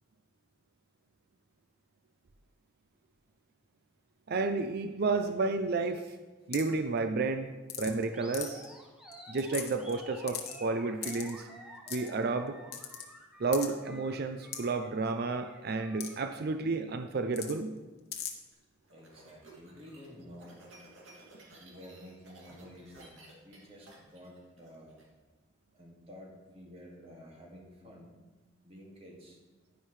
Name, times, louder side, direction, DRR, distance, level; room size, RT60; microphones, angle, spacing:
voice 1, 4.3-6.1 6.5-7.5 7.8-8.6 9.3-11.5 11.9-12.6 13.4-17.7, right 3 dB, 55° right, 8 dB, 0.5 m, -31 dB
sound 1, 6.5-6.8 7.7-8.0 8.3-8.7 9.1-9.2 9.4-9.9 10.3-10.6 11.0-11.3 11.9-12.1 12.7-13.0 13.5-13.7 14.5-14.6 16.0-16.1 16.4-16.5 17.3-17.5 18.1-18.3, left 10 dB, 55° left, 1.1 m, -38 dB
Animal, 8.1-16.3, equal, 5° right, 1.2 m, -51 dB
sound 2, 18.5-25.0, right 2 dB, 85° right, 2.3 m, -55 dB
voice 2, 18.9-20.6 21.6-25.1 25.7-28.1 28.6-29.4, equal, 30° right, -2 dB, 2.0 m, -51 dB
10.0 x 10.0 x 3.2 m, 1.3 s
head